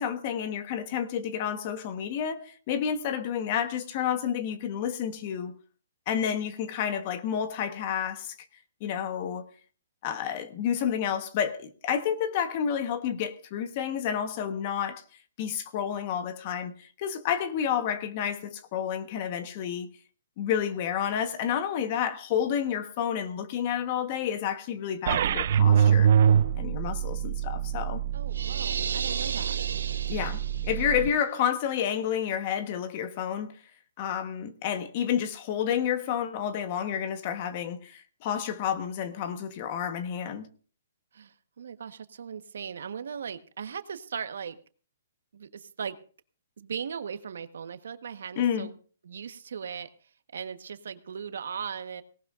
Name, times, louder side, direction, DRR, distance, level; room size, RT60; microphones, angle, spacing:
voice 1, 0.0-5.5 6.1-8.3 8.8-9.5 10.0-15.0 15.4-19.9 20.4-26.1 26.5-28.0 30.1-33.6 34.0-40.5 48.4-48.7, left 8 dB, 30° left, 1.2 m, -30 dB
sound 1, 25.1-31.1, right 8 dB, 45° right, 0.5 m, -25 dB
voice 2, 28.1-29.6 41.1-44.6 45.3-46.0 46.6-48.7 49.0-49.9 50.3-52.0, right 7 dB, 70° right, 1.3 m, -38 dB
sound 2, 28.3-30.9, right 6 dB, 85° right, 1.4 m, -34 dB
18.0 x 17.5 x 2.5 m
hypercardioid pair, 170°, 0 cm